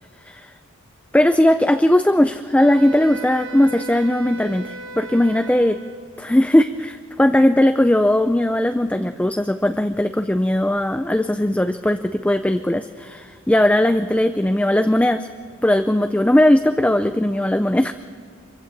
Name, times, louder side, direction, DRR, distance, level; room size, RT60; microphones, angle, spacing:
voice 1, 1.1-5.8 6.2-15.3 15.6-17.9, left 1 dB, 5° left, 9 dB, 0.4 m, -18 dB
Wind instrument woodwind instrument, 2.6-6.0, right 2 dB, 85° right, 3.0 m, -36 dB
24.0 x 15.0 x 7.3 m, 2.3 s
head